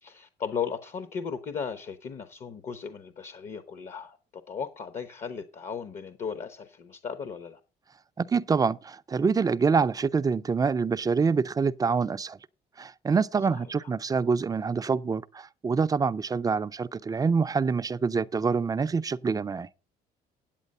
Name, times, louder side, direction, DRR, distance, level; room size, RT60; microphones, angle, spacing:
voice 1, 0.0-4.2 4.5-7.6 13.5-13.7, left 6 dB, 45° left, 0.9 m, -36 dB
voice 2, 8.2-12.4 12.8-19.7, right 5 dB, 20° right, 0.4 m, -26 dB
9.1 x 8.1 x 5.4 m
cardioid pair, 110°, 17 cm